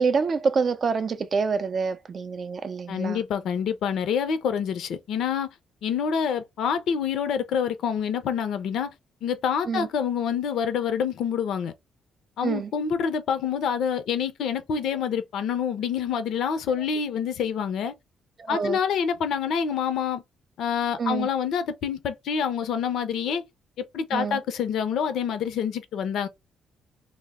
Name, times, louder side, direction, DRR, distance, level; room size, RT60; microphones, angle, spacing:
voice 1, 0.0-3.2 9.7-9.9 12.4-12.7 18.4-18.8 21.0-21.3 24.1-24.4, right 5 dB, 45° right, 0.4 m, -26 dB
voice 2, 2.9-5.5 5.8-8.9 9.2-11.7 12.4-17.9 18.5-20.2 20.6-23.4 23.8-26.3, left 7 dB, 75° left, 0.5 m, -27 dB
2.0 x 2.0 x 3.4 m
cardioid pair, 90°, 0 cm